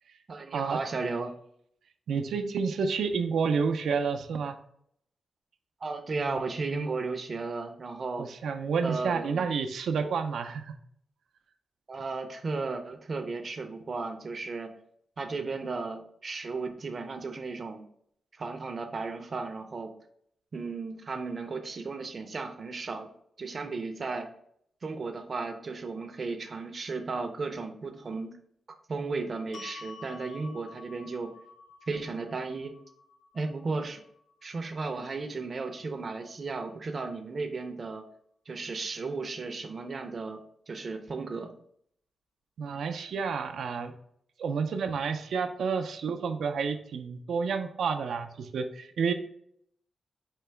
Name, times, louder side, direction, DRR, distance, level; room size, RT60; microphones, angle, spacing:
voice 1, 0.3-1.3 5.8-8.3 8.8-9.4 11.9-14.7 15.2-17.8 18.4-19.9 20.5-23.1 23.4-24.3 24.8-28.4 28.9-31.3 31.9-32.8 33.3-34.0 34.4-38.0 38.5-40.4 40.7-41.5, right 3 dB, 35° right, 5 dB, 0.5 m, -35 dB
voice 2, 2.1-4.5 8.2-10.8 42.6-43.9 44.4-49.1, right 5 dB, 90° right, 6 dB, 0.4 m, -30 dB
sound 1, 29.5-35.7, left 4 dB, 80° left, 0.7 m, -51 dB
4.5 x 2.9 x 3.3 m, 0.68 s
wide cardioid pair, 165°, 0 cm